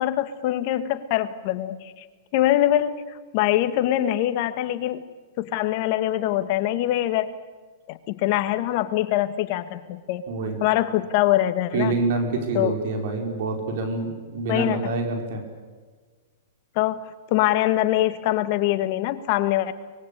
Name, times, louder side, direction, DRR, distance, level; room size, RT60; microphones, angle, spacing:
voice 1, 0.0-2.1 2.3-3.0 3.3-5.0 5.4-7.3 7.9-10.2 10.6-11.9 12.5-12.7 14.5-14.8 16.8-17.0 17.3-19.7, left 14 dB, 50° left, 11 dB, 1.7 m, -23 dB
voice 2, 10.3-10.6 11.7-15.4, right 3 dB, 60° right, 3 dB, 5.2 m, -26 dB
24.0 x 21.0 x 8.6 m, 1.4 s
hypercardioid pair, 125°, 0 cm